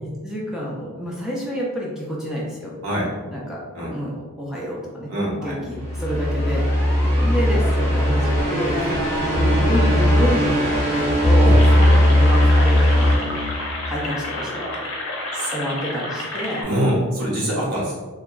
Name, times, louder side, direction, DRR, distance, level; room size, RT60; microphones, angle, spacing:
voice 1, 0.0-2.7 3.3-3.6 3.9-4.1 4.4-6.7 7.1-9.0 9.4-14.7 15.5-16.6, equal, 5° right, -5 dB, 0.4 m, -28 dB
voice 2, 2.8-3.2 3.7-3.9 5.1-5.6 7.0-7.2 8.8-9.0 11.4-11.6 15.3-15.5 16.6-17.9, equal, 85° right, -6 dB, 0.9 m, -24 dB
sound 1, 5.7-14.0, equal, 15° left, 0.8 m, -18 dB
sound 2, 11.6-16.6, left 2 dB, 65° left, 0.6 m, -30 dB
2.8 x 2.2 x 2.3 m, 1.4 s
head